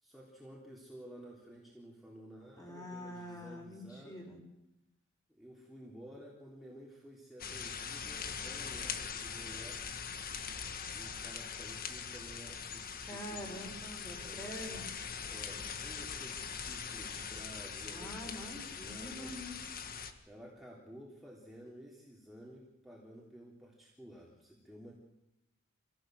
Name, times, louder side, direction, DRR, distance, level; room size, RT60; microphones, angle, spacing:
voice 1, 0.0-4.3 5.3-9.9 10.5-13.6 14.2-14.5 15.3-19.4 20.3-24.9, equal, ahead, -4 dB, 3.5 m, -53 dB
voice 2, 2.6-4.4 13.0-14.9 17.9-19.6, equal, 20° left, 1 dB, 5.9 m, -45 dB
sound 1, 7.4-20.1, left 6 dB, 45° left, 1.7 m, -42 dB
26.5 x 17.0 x 7.8 m, 0.89 s
head